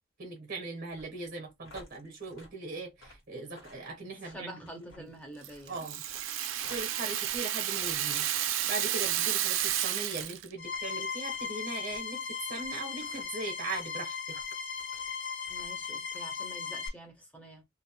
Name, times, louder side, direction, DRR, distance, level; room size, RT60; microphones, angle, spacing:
voice 1, 0.2-4.5 5.7-6.0 6.7-8.3 8.7-14.4, right 3 dB, 50° right, 0.8 m, -39 dB
sound 1, 0.9-9.1 9.5-9.8 10.1-10.3 10.7-10.9 11.3-11.5 11.9-12.0 12.6-12.7 12.9-13.3 13.7-13.9 14.3-15.1 15.4-15.8 16.1-16.2, left 2 dB, 90° left, 1.3 m, -55 dB
voice 2, 4.2-5.9 15.5-17.7, right 1 dB, 5° left, 0.7 m, -47 dB
Rattle (instrument), 5.4-10.5, right 11 dB, 75° right, 0.4 m, -31 dB
sound 2, 10.6-16.9, left 5 dB, 70° left, 0.5 m, -37 dB
2.5 x 2.0 x 2.8 m
head